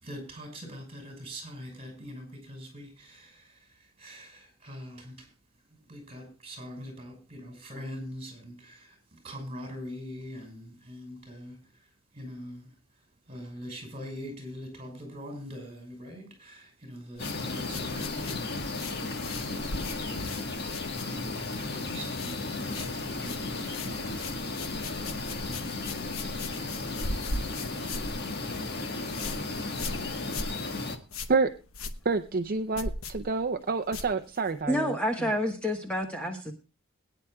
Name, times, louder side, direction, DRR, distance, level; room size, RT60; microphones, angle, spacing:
voice 1, 0.0-3.4 4.0-5.3 5.9-9.0 9.2-11.6 12.1-12.7 13.3-20.2 21.0-24.0 25.4-25.8, equal, 30° right, 5.6 m, -43 dB
sound 1, 17.2-21.5 21.8-22.4 22.6-34.6, left 2 dB, 75° left, 1.1 m, -39 dB
sound 2, 17.2-31.0, left 3 dB, 50° left, 1.5 m, -34 dB
voice 2, 32.1-35.0, right 4 dB, 45° right, 0.6 m, -28 dB
voice 3, 34.7-36.5, equal, 5° left, 1.3 m, -29 dB
21.5 x 9.9 x 2.3 m
head